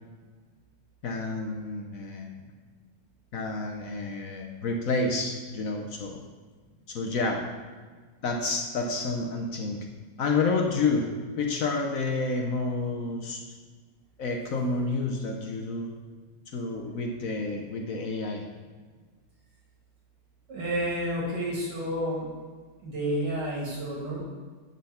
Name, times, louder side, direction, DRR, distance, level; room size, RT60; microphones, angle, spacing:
voice 1, 1.0-2.3 3.3-6.2 6.9-7.4 8.2-9.8 10.2-11.1 11.4-13.4 14.2-15.9 16.5-18.4, left 3 dB, 60° left, 2 dB, 1.0 m, -29 dB
voice 2, 20.5-22.3 22.8-24.2, equal, 75° right, -4 dB, 2.9 m, -30 dB
9.7 x 3.9 x 5.6 m, 1.4 s
omnidirectional pair, 1.9 m